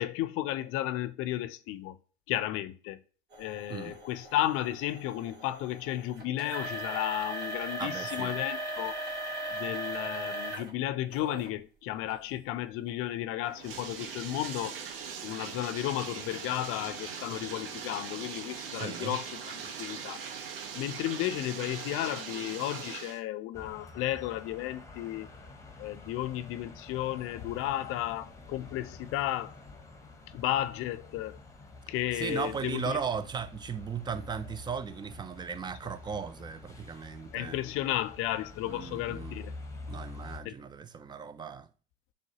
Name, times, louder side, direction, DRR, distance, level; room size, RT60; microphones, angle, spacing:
voice 1, 0.0-2.0 2.3-3.0 3.4-8.9 9.5-14.8 15.2-20.2 20.7-25.3 25.8-29.5 30.3-31.4 31.9-33.0 37.3-39.5 40.4-40.5, left 14 dB, 50° left, 0.6 m, -33 dB
sound 1, 3.3-10.7 11.1-11.5 12.1-12.2 12.9-13.0, right 1 dB, 35° right, 1.7 m, -38 dB
voice 2, 3.7-4.0 7.8-8.3 18.8-19.2 32.1-37.6 38.6-39.4 39.9-41.7, right 6 dB, 15° right, 0.4 m, -37 dB
Bathtub (filling or washing), 13.4-23.2, right 6 dB, 70° right, 0.8 m, -41 dB
sound 2, 23.5-40.4, left 3 dB, 10° left, 0.9 m, -48 dB
6.2 x 2.3 x 2.8 m
hypercardioid pair, 75°, 29 cm